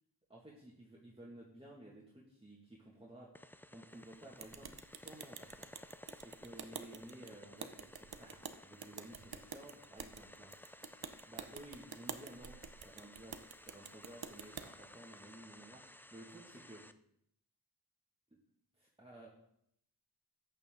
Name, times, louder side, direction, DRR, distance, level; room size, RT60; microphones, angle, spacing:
voice 1, 0.3-3.3 3.7-4.7 5.0-5.7 6.2-10.5 11.2-16.8 18.8-19.3, right 1 dB, 15° right, -5 dB, 2.1 m, -54 dB
sound 1, 3.4-16.9, left 1 dB, 5° left, 0.4 m, -57 dB
sound 2, 4.4-14.7, right 6 dB, 65° right, 0.9 m, -49 dB
14.0 x 9.1 x 3.9 m, 0.73 s
wide cardioid pair, 70°, 40 cm